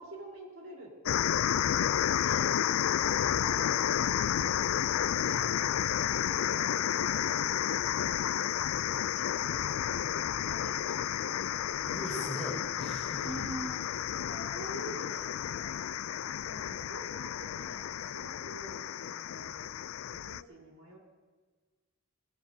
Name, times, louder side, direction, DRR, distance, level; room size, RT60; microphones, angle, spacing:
voice 1, 0.0-1.6 2.2-2.5 3.0-6.6 6.9-7.9 8.2-11.9 13.2-13.8 14.1-15.7 16.4-19.7 20.1-21.0, right 1 dB, 75° right, -1 dB, 3.9 m, -47 dB
sound 1, 1.1-20.4, left 10 dB, 70° left, 0.3 m, -31 dB
voice 2, 5.2-5.5 11.8-13.3, equal, 5° left, -6 dB, 4.9 m, -41 dB
19.0 x 17.5 x 2.7 m, 1.4 s
head